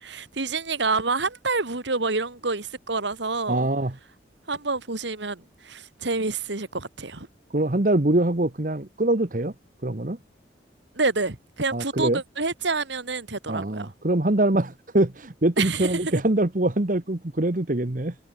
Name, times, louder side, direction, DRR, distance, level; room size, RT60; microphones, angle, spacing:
voice 1, 0.0-3.7 4.5-7.3 11.0-13.9 15.6-16.0, right 3 dB, 70° right, 1.9 m, -28 dB
voice 2, 3.5-4.0 7.5-9.5 9.8-10.2 11.7-12.2 13.5-18.1, right 1 dB, 45° right, 1.2 m, -23 dB
head